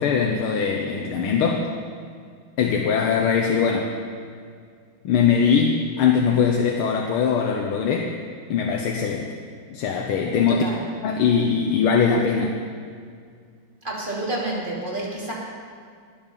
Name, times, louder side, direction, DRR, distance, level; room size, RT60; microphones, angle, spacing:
voice 1, 0.0-1.7 2.6-3.9 5.0-8.1 8.5-9.3 9.7-10.6 11.0-12.6, left 6 dB, 85° left, 1 dB, 1.7 m, -21 dB
voice 2, 10.5-10.8 13.8-15.3, right 2 dB, 25° right, -5 dB, 2.8 m, -29 dB
20.0 x 7.2 x 5.3 m, 2.1 s
omnidirectional pair, 2.3 m